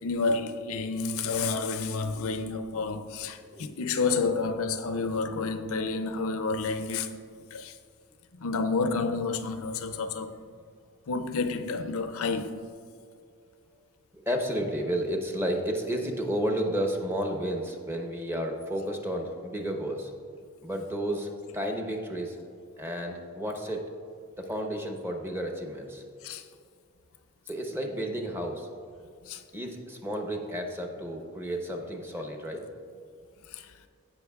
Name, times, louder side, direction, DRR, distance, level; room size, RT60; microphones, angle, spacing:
voice 1, 0.0-7.2 7.5-7.8 8.3-10.3 11.1-12.6 26.2-26.4 29.2-29.4 33.5-33.7, left 4 dB, 65° left, 0.5 m, -30 dB
voice 2, 3.5-3.8 14.1-20.1 20.6-22.5 22.8-23.8 24.4-26.0 27.5-28.7 29.5-32.7, equal, 10° right, 0.8 m, -32 dB
16.0 x 5.9 x 2.4 m
head